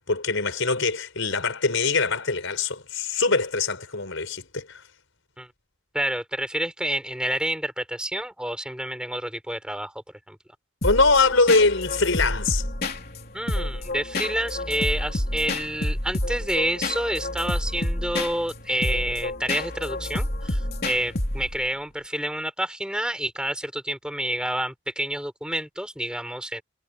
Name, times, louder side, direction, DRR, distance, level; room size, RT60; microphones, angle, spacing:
voice 1, 0.1-4.8 10.8-12.6, left 3 dB, 80° left, 4.8 m, -23 dB
voice 2, 5.9-10.4 13.3-26.6, right 1 dB, 5° right, 6.7 m, -29 dB
sound 1, 10.8-21.7, left 1 dB, 50° left, 3.9 m, -29 dB
head